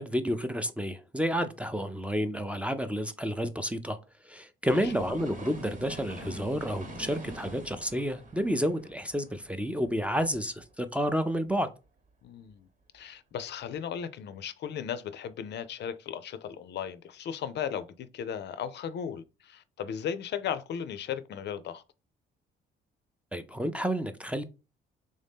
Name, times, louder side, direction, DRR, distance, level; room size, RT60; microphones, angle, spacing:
voice 1, 0.0-4.0 4.2-11.7 23.3-24.4, equal, 5° right, 0.4 m, -30 dB
sound 1, 4.6-10.6 11.0-11.1, right 1 dB, 40° right, 1.0 m, -45 dB
voice 2, 12.2-12.7 12.9-21.8, left 8 dB, 60° left, 0.4 m, -36 dB
3.5 x 2.7 x 3.5 m
cardioid pair, 90°, 20 cm